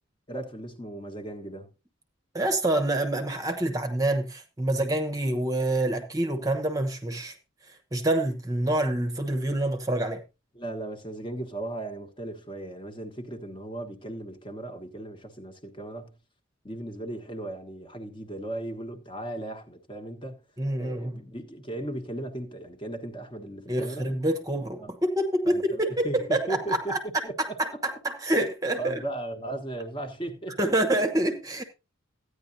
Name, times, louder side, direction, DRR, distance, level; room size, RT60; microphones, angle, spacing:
voice 1, 0.3-1.7 10.5-16.2 16.6-20.4 20.8-24.1 24.8-24.9 25.4-27.6 28.8-30.7, right 1 dB, 25° left, 1.3 m, -37 dB
voice 2, 2.3-7.3 7.9-10.2 20.6-21.2 23.7-27.0 27.4-29.0 30.6-31.6, right 1 dB, 15° right, 1.0 m, -27 dB
14.5 x 9.8 x 2.7 m
head